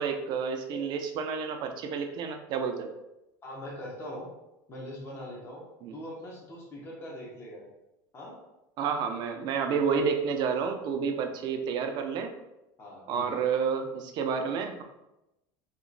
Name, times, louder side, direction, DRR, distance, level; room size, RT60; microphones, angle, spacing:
voice 1, 0.0-2.9 5.8-5.9 8.8-12.3 13.1-14.8, right 6 dB, 40° right, 5 dB, 0.5 m, -30 dB
voice 2, 3.4-4.3 4.7-5.6 5.9-7.7 8.1-8.3 12.8-13.4, equal, 20° left, -4 dB, 0.9 m, -41 dB
3.0 x 2.9 x 3.8 m, 0.94 s
supercardioid pair, 155°, 11 cm